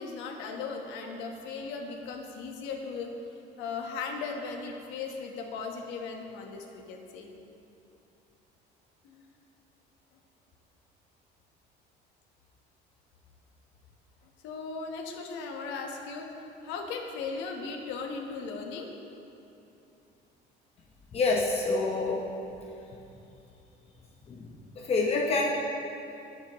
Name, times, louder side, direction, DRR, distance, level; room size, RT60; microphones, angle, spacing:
voice 1, 0.0-7.3 9.0-9.2 14.4-18.9, left 4 dB, 85° left, 2 dB, 1.4 m, -37 dB
voice 2, 21.1-22.2 24.3-24.5 24.8-25.5, left 3 dB, 35° left, -1 dB, 0.9 m, -27 dB
19.0 x 7.4 x 3.1 m, 2.9 s
cardioid pair, 155°, 18 cm